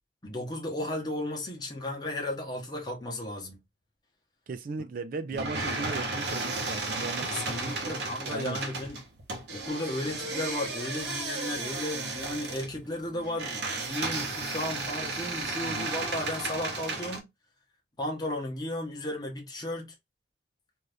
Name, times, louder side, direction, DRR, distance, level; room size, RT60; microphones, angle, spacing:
voice 1, 0.2-3.6 5.3-5.4 7.2-9.0 9.5-17.3 18.0-19.9, left 1 dB, 25° left, 0.9 m, -34 dB
voice 2, 4.5-8.6 15.6-15.9, right 4 dB, 50° right, 0.4 m, -37 dB
sound 1, 5.3-17.2, right 3 dB, 70° right, 0.9 m, -34 dB
2.6 x 2.4 x 3.3 m
head